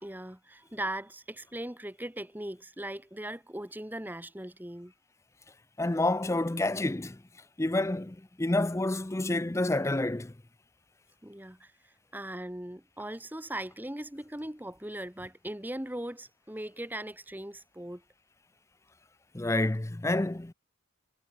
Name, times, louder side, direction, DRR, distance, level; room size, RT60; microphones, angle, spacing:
voice 1, 0.0-4.9 11.2-18.0, right 1 dB, 10° right, 1.3 m, -39 dB
voice 2, 5.8-7.2 7.6-10.3 19.3-20.5, left 2 dB, 15° left, 0.5 m, -28 dB
head